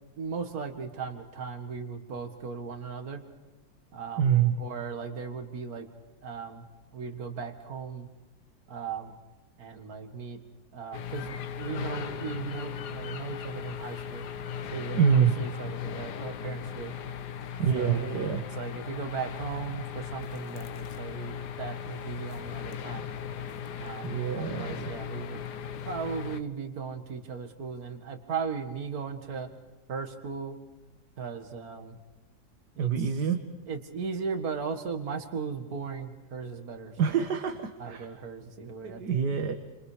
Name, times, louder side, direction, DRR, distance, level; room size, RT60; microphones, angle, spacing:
voice 1, 0.2-3.2 3.9-5.9 6.2-6.7 6.9-8.1 8.7-9.2 9.6-10.4 10.7-14.3 14.7-16.9 17.7-23.1 23.8-24.1 24.3-25.5 25.9-29.5 29.9-30.6 31.2-32.0 32.8-32.9 33.7-37.2 37.8-39.2, right 5 dB, 65° right, 6 dB, 2.3 m, -37 dB
voice 2, 4.2-4.5 15.0-15.3 17.6-18.4 24.0-24.8 32.8-33.4 37.0-38.1 38.8-39.5, right 7 dB, 85° right, 7 dB, 2.0 m, -26 dB
sound 1, 10.9-26.4, left 8 dB, 80° left, 1.6 m, -38 dB
30.0 x 27.0 x 5.0 m, 1.1 s
omnidirectional pair, 1.7 m